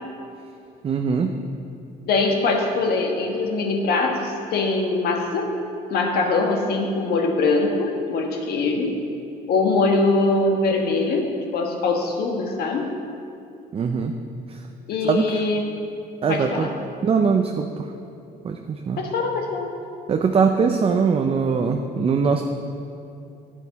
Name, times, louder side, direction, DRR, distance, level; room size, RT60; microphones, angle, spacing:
voice 1, 0.8-1.4 13.7-14.1 14.5-14.6 15.0-15.4 16.2-16.7 17.0-17.7 18.4-19.0 20.1-22.4, right 5 dB, 35° right, 4 dB, 0.5 m, -21 dB
voice 2, 2.0-5.5 5.9-9.0 9.5-12.9 14.9-15.7 16.3-16.7 19.0-19.7, left 3 dB, 70° left, 2 dB, 1.4 m, -22 dB
11.0 x 9.1 x 4.2 m, 2.6 s
cardioid pair, 110°, 17 cm